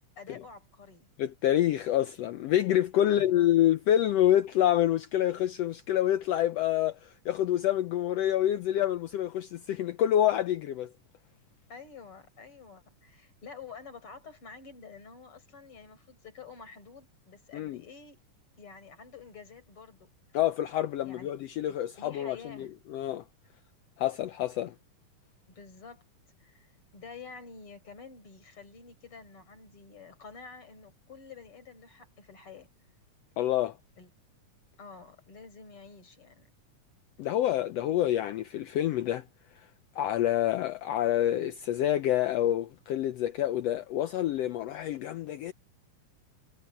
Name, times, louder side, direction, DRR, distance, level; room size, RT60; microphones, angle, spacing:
voice 1, 0.2-1.1 3.0-3.6 11.7-18.2 18.6-20.1 21.0-21.4 21.6-22.7 25.5-26.0 26.4-32.7 34.0-34.1 34.8-36.5, left 5 dB, 45° left, 5.3 m, -49 dB
voice 2, 1.2-10.9 17.5-17.8 20.3-23.2 24.0-24.7 33.4-33.7 37.2-39.2 39.6-39.7 40.0-45.5, left 12 dB, 80° left, 1.5 m, -27 dB
omnidirectional pair, 3.5 m